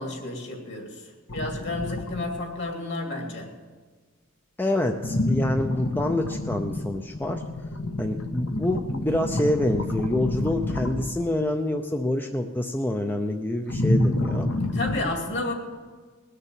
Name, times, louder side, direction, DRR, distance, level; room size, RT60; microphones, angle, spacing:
voice 1, 0.0-3.5 14.6-15.5, left 2 dB, 55° left, 2 dB, 2.6 m, -31 dB
sound 1, 1.3-2.3 5.0-11.3 13.7-15.0, left 1 dB, 75° left, 1.3 m, -28 dB
voice 2, 4.6-7.4 8.0-14.5, left 1 dB, 10° left, 4 dB, 0.5 m, -26 dB
20.0 x 6.8 x 7.4 m, 1.5 s
head